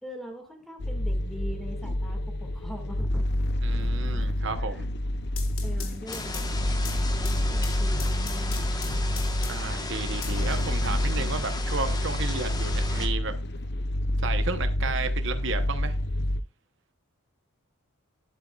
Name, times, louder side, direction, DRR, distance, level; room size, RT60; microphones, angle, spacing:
voice 1, 0.0-3.3 4.6-4.8 5.6-6.5 7.2-9.1, equal, ahead, 1.8 m, -42 dB
sound 1, 0.8-16.4, left 1 dB, 50° left, 0.6 m, -28 dB
voice 2, 3.6-4.8 9.5-13.3 14.2-16.0, right 4 dB, 60° right, 0.9 m, -33 dB
sound 2, 5.1-9.8 10.2-11.2, left 8 dB, 75° left, 1.5 m, -42 dB
sound 3, 6.1-13.1, left 2 dB, 20° left, 1.1 m, -36 dB
11.5 x 7.9 x 2.3 m
head